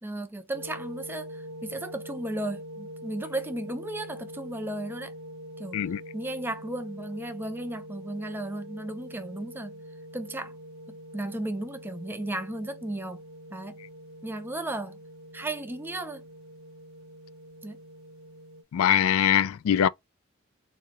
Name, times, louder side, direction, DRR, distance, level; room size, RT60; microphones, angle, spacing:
voice 1, 0.0-5.1 5.6-5.8 6.1-9.8 10.1-10.5 10.9-13.2 13.5-13.8 14.2-15.0 15.3-16.2 17.6-17.8, right 1 dB, 10° right, 0.4 m, -35 dB
sound 1, 0.5-18.6, equal, 75° right, 0.7 m, -44 dB
voice 2, 18.7-19.9, left 9 dB, 75° left, 0.3 m, -22 dB
3.9 x 2.7 x 2.8 m
head